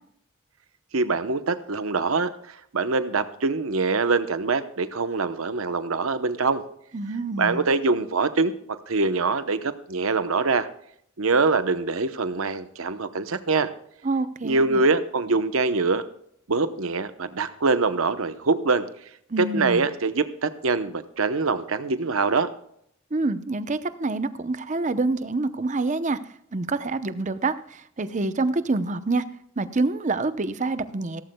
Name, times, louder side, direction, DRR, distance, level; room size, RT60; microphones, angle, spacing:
voice 1, 0.9-6.6 7.4-8.5 8.9-10.7 11.2-13.7 14.4-16.0 16.5-18.9 19.4-22.5, right 3 dB, 85° right, 11 dB, 0.9 m, -24 dB
voice 2, 6.9-7.7 14.0-14.8 19.3-19.9 23.1-26.2 26.5-29.2 29.6-31.2, right 3 dB, 35° right, 12 dB, 0.7 m, -26 dB
16.5 x 14.0 x 2.3 m, 0.69 s
head